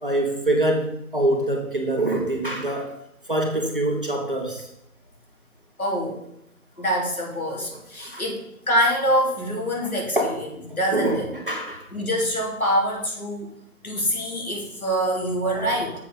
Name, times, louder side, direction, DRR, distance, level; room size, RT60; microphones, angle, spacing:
voice 1, 0.0-2.9 3.3-4.7 8.0-8.2 10.2-10.4 10.9-11.9 15.6-15.8, right 1 dB, 35° right, 1 dB, 1.3 m, -24 dB
voice 2, 5.8-6.2 6.8-10.2 10.7-11.3 11.9-13.5 13.8-15.9, equal, 70° left, -1 dB, 3.1 m, -25 dB
7.2 x 6.6 x 5.1 m, 0.80 s
figure-of-eight pair, 175°, 45 cm